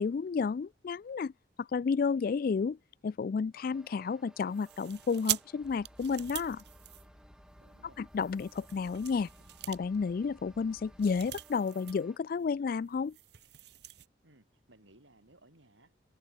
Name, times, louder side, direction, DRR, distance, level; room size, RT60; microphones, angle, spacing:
voice 1, 0.0-1.3 1.6-2.8 3.0-6.6 8.0-9.3 9.7-13.2, left 5 dB, 50° left, 0.3 m, -31 dB
sound 1, 3.5-12.2, equal, 5° right, 3.2 m, -61 dB
sound 2, 4.5-7.6 8.1-12.1 12.3-12.5 12.8-14.1, right 14 dB, 60° right, 1.1 m, -42 dB
sound 3, 5.6-11.3, equal, 15° left, 2.5 m, -58 dB
voice 2, 7.6-8.0 14.2-15.9, right 1 dB, 85° right, 5.8 m, -61 dB
open air
head